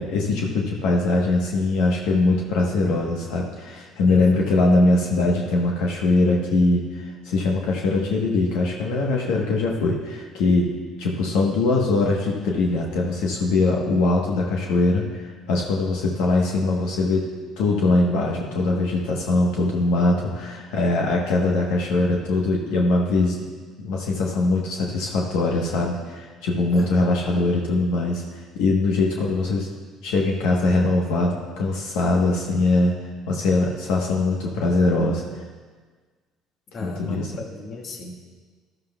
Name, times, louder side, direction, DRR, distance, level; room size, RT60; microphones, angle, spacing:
voice 1, 0.0-17.3 17.6-23.4 23.8-29.7 30.0-32.9 33.3-35.4 36.8-37.3, left 2 dB, 80° left, -1 dB, 1.1 m, -22 dB
voice 2, 4.0-4.6 26.7-26.9 36.7-38.3, left 2 dB, 50° left, 1 dB, 1.6 m, -36 dB
13.0 x 12.0 x 2.3 m, 1.5 s
supercardioid pair, 80°, 0 cm